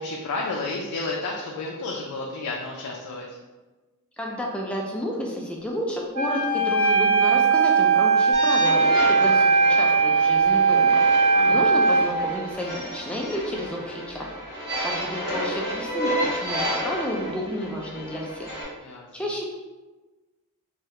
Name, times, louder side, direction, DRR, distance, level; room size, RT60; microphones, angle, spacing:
voice 1, 0.0-3.2 9.2-9.4 11.3-11.7 18.8-19.1, left 3 dB, 85° left, -1 dB, 0.4 m, -31 dB
voice 2, 4.2-11.0 11.5-14.3 14.8-18.5 19.1-19.4, equal, 5° left, -2 dB, 0.4 m, -31 dB
Wind instrument woodwind instrument, 6.1-12.1, right 4 dB, 70° right, 0.5 m, -19 dB
sound 1, 8.3-18.6, equal, 50° right, 1.0 m, -31 dB
3.2 x 2.3 x 2.8 m, 1.2 s
head